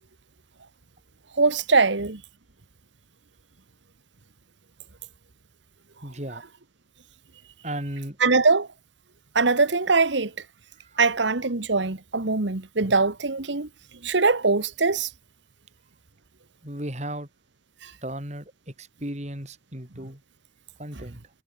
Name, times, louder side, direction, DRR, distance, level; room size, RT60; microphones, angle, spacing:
voice 1, 1.4-2.2 8.2-8.7 9.3-10.3 11.0-13.7 14.0-15.1 17.8-17.9 20.9-21.0, right 4 dB, 75° right, 1.4 m, -22 dB
voice 2, 6.0-6.4 7.6-8.2 10.8-11.0 16.6-17.3 18.0-20.2 20.8-21.2, right 1 dB, 35° right, 5.7 m, -35 dB
head